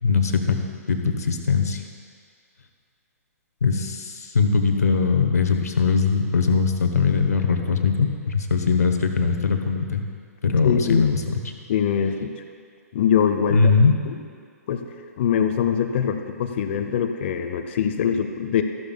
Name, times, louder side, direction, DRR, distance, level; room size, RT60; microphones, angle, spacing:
voice 1, 0.0-0.6 0.9-1.8 3.6-10.0 10.4-11.4 13.5-13.9, left 5 dB, 70° left, 6 dB, 1.1 m, -21 dB
voice 2, 10.6-11.1 11.7-12.3 12.9-13.7 14.1-14.2 14.7-14.8 15.2-18.6, left 8 dB, 45° left, 7 dB, 0.7 m, -23 dB
14.0 x 12.0 x 2.3 m, 2.1 s
figure-of-eight pair, 125°, 9 cm